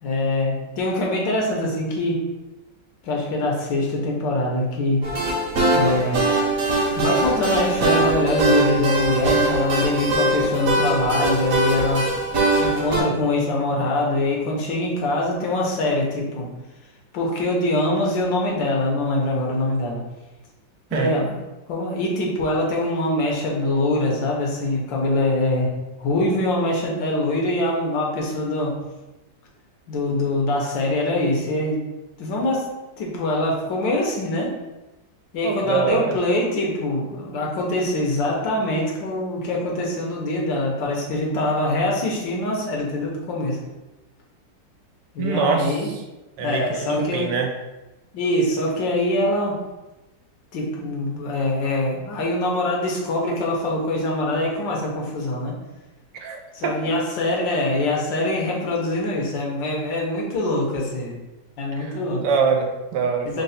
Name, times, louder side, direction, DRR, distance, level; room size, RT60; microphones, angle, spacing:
voice 1, 0.0-2.2 3.0-5.0 5.7-6.2 6.9-12.1 12.6-16.5 17.1-20.0 20.9-21.4 21.7-25.7 26.0-28.7 29.9-31.8 32.2-32.6 33.0-34.5 35.3-43.6 45.1-45.9 46.4-47.3 48.1-49.6 50.5-55.6 56.5-61.1 61.6-62.3 63.2-63.4, left 1 dB, 85° left, -1 dB, 1.6 m, -23 dB
sound 1, 5.0-13.0, right 2 dB, 60° right, 1.1 m, -21 dB
voice 2, 35.4-36.2 45.2-46.0 46.4-47.5 56.2-56.8 61.8-61.9 62.2-63.4, right 5 dB, 80° right, 2 dB, 1.2 m, -24 dB
3.8 x 2.1 x 4.0 m, 1.0 s
omnidirectional pair, 2.0 m